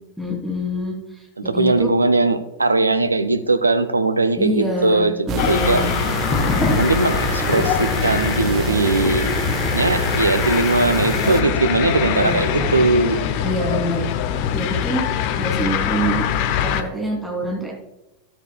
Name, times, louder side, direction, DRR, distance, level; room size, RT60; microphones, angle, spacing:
voice 1, 0.2-1.9 4.4-5.9 12.0-12.6 13.4-14.0 14.5-16.3 16.6-17.7, equal, ahead, -2 dB, 3.1 m, -26 dB
voice 2, 1.4-5.9 6.8-9.4 9.7-13.6, right 2 dB, 80° right, 11 dB, 0.7 m, -20 dB
sound 1, 5.3-11.4, right 7 dB, 35° right, 0.7 m, -27 dB
sound 2, 5.4-16.8, left 10 dB, 45° left, 0.7 m, -23 dB
sound 3, 6.1-15.5, left 2 dB, 25° left, 2.2 m, -31 dB
13.5 x 12.5 x 2.3 m, 0.98 s
figure-of-eight pair, 90°, 0 cm